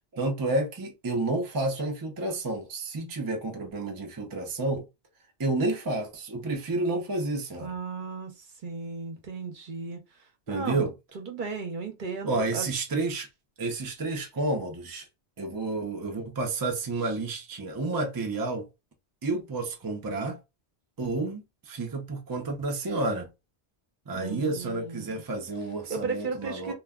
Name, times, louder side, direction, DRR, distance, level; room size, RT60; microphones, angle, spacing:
voice 1, 0.1-4.9 5.4-7.7 10.5-10.9 12.2-13.3 13.6-15.1 15.4-18.7 19.2-20.4 21.0-23.3 24.1-26.7, right 2 dB, 35° right, 0.3 m, -30 dB
voice 2, 7.6-10.0 10.5-10.9 11.1-12.7 24.1-25.2 25.9-26.7, right 4 dB, 50° right, 0.8 m, -35 dB
2.2 x 2.1 x 3.4 m
omnidirectional pair, 1.1 m